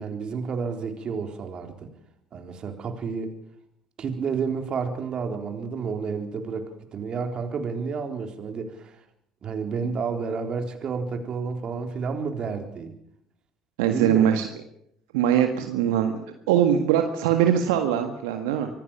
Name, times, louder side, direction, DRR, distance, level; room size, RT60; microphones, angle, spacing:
voice 1, 0.0-1.9 2.3-3.3 4.0-8.9 9.4-12.9 13.9-14.3, right 5 dB, 40° right, 5 dB, 3.8 m, -30 dB
voice 2, 13.8-14.5 15.1-16.2 16.5-18.7, right 9 dB, 70° right, 5 dB, 1.8 m, -22 dB
24.5 x 16.5 x 7.2 m, 0.73 s
hypercardioid pair, 60°, 2 cm